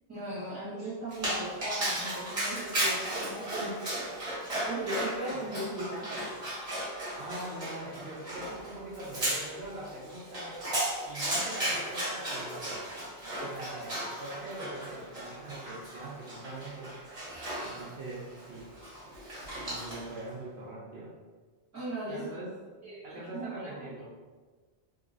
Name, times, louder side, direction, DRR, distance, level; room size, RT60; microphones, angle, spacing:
voice 1, 0.1-3.8 4.7-6.1 21.7-22.3 22.8-23.9, right 1 dB, 15° right, -10 dB, 1.4 m, -38 dB
Dog, 1.1-20.2, right 1 dB, 35° right, 1.1 m, -35 dB
voice 2, 7.2-10.6 11.1-12.8 13.2-16.9 17.6-18.7 19.5-21.1 22.1-22.5 23.0-24.1, right 2 dB, 75° right, -5 dB, 0.9 m, -42 dB
2.9 x 2.9 x 2.6 m, 1.4 s
omnidirectional pair, 1.1 m